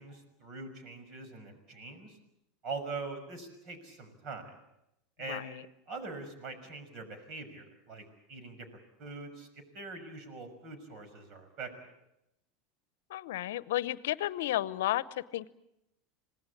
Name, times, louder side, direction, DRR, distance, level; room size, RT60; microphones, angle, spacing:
voice 1, 0.0-2.2 2.6-4.5 5.2-5.6 5.9-11.9, right 3 dB, 50° right, 9 dB, 6.1 m, -43 dB
voice 2, 13.1-15.5, left 14 dB, 75° left, 18 dB, 0.8 m, -32 dB
26.5 x 18.5 x 8.6 m, 0.85 s
hypercardioid pair, 95°, 0 cm